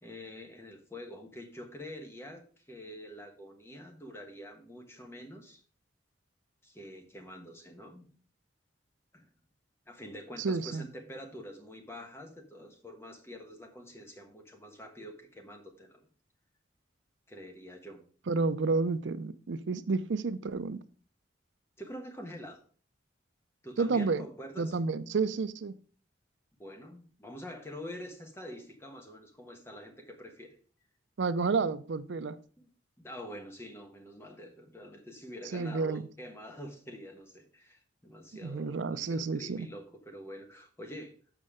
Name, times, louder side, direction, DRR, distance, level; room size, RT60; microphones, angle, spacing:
voice 1, 0.0-5.6 6.6-8.1 9.1-9.3 9.9-16.1 17.3-18.0 21.8-22.6 23.6-24.8 26.6-30.6 32.6-32.7 33.0-41.1, equal, 15° left, 3 dB, 1.3 m, -46 dB
voice 2, 10.4-10.9 18.3-20.8 23.8-24.2 24.6-25.7 31.2-32.4 35.5-36.0 38.4-39.7, right 4 dB, 75° right, 14 dB, 0.5 m, -30 dB
7.4 x 5.3 x 4.9 m, 0.43 s
head